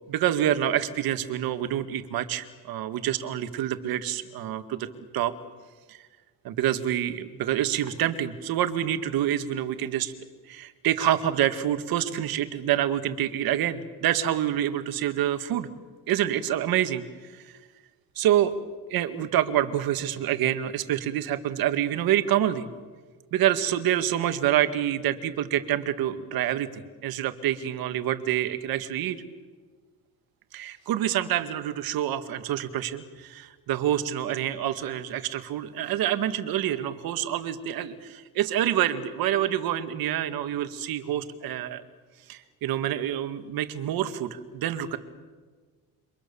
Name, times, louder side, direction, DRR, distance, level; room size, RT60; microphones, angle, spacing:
voice 1, 0.1-4.9 5.1-5.3 5.9-6.0 6.4-10.1 10.5-15.7 16.1-17.0 18.2-18.5 18.9-22.7 23.3-29.2 30.5-41.8 42.3-45.0, right 11 dB, 75° right, 10 dB, 2.0 m, -27 dB
28.5 x 25.5 x 7.1 m, 1.4 s
cardioid pair, 130°, 36 cm